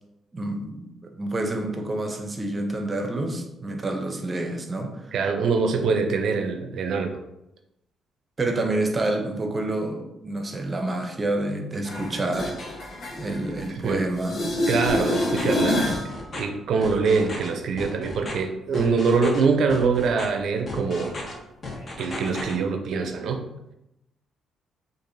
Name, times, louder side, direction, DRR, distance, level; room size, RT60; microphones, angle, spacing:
voice 1, 0.3-5.1 8.4-12.5 13.2-14.4, right 2 dB, 30° right, 4 dB, 0.6 m, -28 dB
voice 2, 5.1-7.2 13.7-14.0 14.7-15.9 16.3-21.1 22.0-23.5, right 4 dB, 70° right, 5 dB, 0.5 m, -24 dB
sound 1, 11.8-13.9 14.2-16.1 21.8-21.9, left 1 dB, 75° left, 1.0 m, -27 dB
sound 2, 14.9-15.6 15.8-16.4 16.8-17.5 17.8-18.3 18.7-19.4 19.7-20.3 20.7-21.3 21.6-22.5, left 2 dB, 40° left, 0.9 m, -35 dB
4.7 x 2.5 x 2.6 m, 0.89 s
cardioid pair, 90°, 0 cm